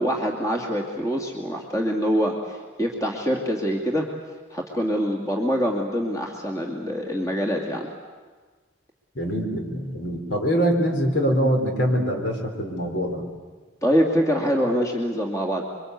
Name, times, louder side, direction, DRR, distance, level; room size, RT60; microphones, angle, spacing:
voice 1, 0.0-4.1 4.5-7.9 13.8-15.6, equal, 15° left, 0 dB, 2.4 m, -24 dB
voice 2, 9.1-13.3, equal, 60° left, 2 dB, 4.5 m, -24 dB
28.0 x 23.5 x 8.3 m, 1.4 s
head